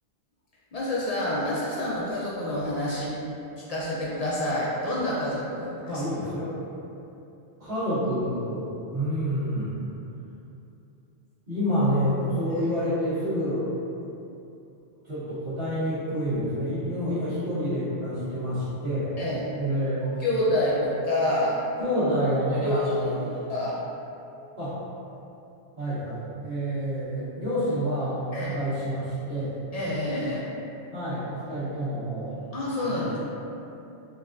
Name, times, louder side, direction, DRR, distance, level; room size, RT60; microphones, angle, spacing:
voice 1, 0.7-3.1 3.7-6.0 19.2-19.4 20.2-21.6 22.5-23.2 23.5-23.8 28.3-28.6 29.7-30.5 32.5-33.2, left 1 dB, 60° left, -7 dB, 0.4 m, -27 dB
voice 2, 5.8-6.5 7.6-9.8 11.5-13.6 15.0-19.2 19.6-20.1 21.8-23.4 24.6-24.8 25.8-29.6 30.9-32.4 32.9-33.2, equal, 55° right, -18 dB, 1.4 m, -28 dB
4.1 x 2.3 x 2.5 m, 2.8 s
omnidirectional pair, 1.2 m